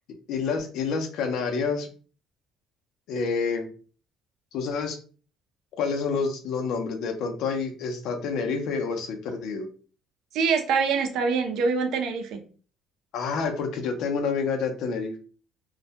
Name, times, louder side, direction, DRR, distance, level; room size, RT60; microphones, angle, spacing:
voice 1, 0.3-1.9 3.1-3.7 4.5-5.0 5.7-9.7 13.1-15.2, left 5 dB, 70° left, 0.6 m, -28 dB
voice 2, 10.3-12.4, right 5 dB, 70° right, 0.5 m, -24 dB
2.2 x 2.1 x 2.7 m
cardioid pair, 130°, 0 cm